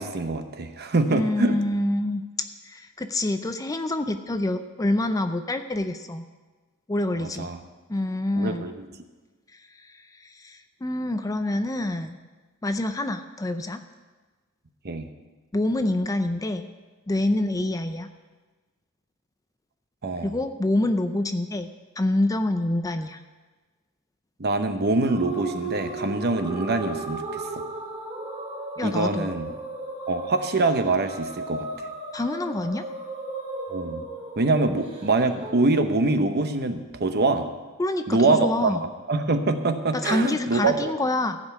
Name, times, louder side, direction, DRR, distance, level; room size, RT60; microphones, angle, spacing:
voice 1, 0.0-1.6 7.2-7.6 8.4-8.9 14.8-15.1 20.0-20.4 24.4-27.6 28.8-29.5 30.1-31.9 33.7-34.1 34.4-37.5 38.1-38.8 39.1-40.9, right 3 dB, 45° right, 8 dB, 0.9 m, -24 dB
voice 2, 1.1-2.2 2.6-6.2 6.9-7.5 7.9-8.7 9.5-12.2 12.6-13.8 15.5-16.7 17.1-18.1 20.2-21.7 22.0-23.2 28.8-29.3 32.1-32.8 37.8-38.9 39.9-41.4, left 1 dB, 15° left, 8 dB, 0.4 m, -26 dB
sound 1, 25.1-35.5, right 3 dB, 25° right, 2.3 m, -35 dB
15.0 x 5.4 x 8.2 m, 1.3 s
head